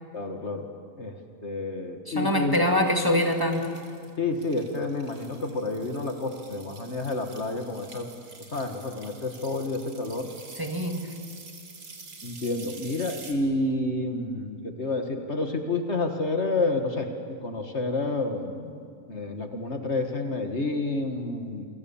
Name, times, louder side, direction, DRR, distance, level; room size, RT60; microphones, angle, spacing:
voice 1, 0.1-0.7 1.0-2.6 4.2-8.1 8.5-10.3 12.2-17.1 17.4-21.7, left 2 dB, 50° left, 5 dB, 2.0 m, -29 dB
voice 2, 2.1-3.8 10.6-11.1, left 1 dB, 15° right, 3 dB, 1.8 m, -24 dB
sound 1, 3.0-13.3, right 4 dB, 90° right, 2.9 m, -47 dB
28.0 x 23.0 x 7.2 m, 2.3 s
omnidirectional pair, 1.5 m